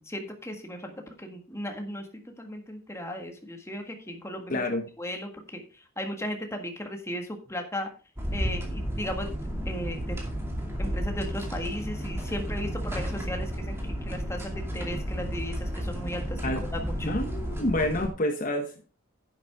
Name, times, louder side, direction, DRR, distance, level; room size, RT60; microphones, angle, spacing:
voice 1, 0.0-2.1 2.4-4.6 5.0-7.9 8.3-9.3 9.6-10.2 10.8-16.4 16.7-17.2, equal, 15° left, 4 dB, 1.6 m, -36 dB
voice 2, 4.5-4.9 16.4-16.6 17.0-18.9, left 1 dB, 40° left, 5 dB, 1.0 m, -28 dB
sound 1, 8.2-18.1, equal, 10° right, 2.4 m, -32 dB
10.5 x 8.0 x 3.6 m, 0.34 s
head